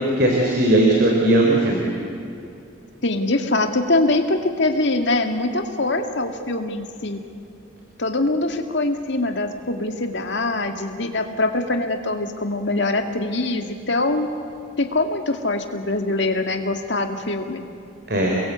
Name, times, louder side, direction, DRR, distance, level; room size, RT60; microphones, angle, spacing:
voice 1, 0.2-1.9 18.1-18.3, right 1 dB, 50° right, 0 dB, 3.9 m, -18 dB
voice 2, 3.0-7.2 8.0-14.3 14.8-17.6, left 2 dB, 60° left, 5 dB, 2.2 m, -23 dB
29.0 x 22.0 x 8.3 m, 2.7 s
head